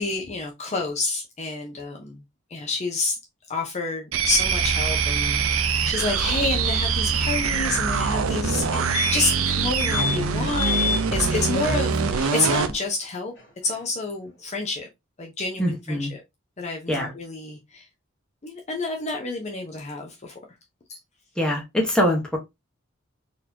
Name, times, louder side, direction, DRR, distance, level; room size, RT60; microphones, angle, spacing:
voice 1, 0.0-2.2 2.5-3.2 3.5-13.3 13.6-14.9 15.2-16.2 16.6-17.9 18.4-20.3 20.9-21.0, left 3 dB, 35° left, 0.6 m, -29 dB
sound 1, 4.1-12.8, right 5 dB, 85° right, 0.5 m, -24 dB
sound 2, 8.6-8.7 8.9-9.4 9.8-10.2 10.6-11.0 13.4-13.5 13.7-13.8, left 5 dB, 60° left, 1.4 m, -27 dB
voice 2, 15.6-16.1 16.9-17.1 21.4-22.4, equal, 5° left, 1.2 m, -23 dB
4.1 x 2.9 x 2.8 m
head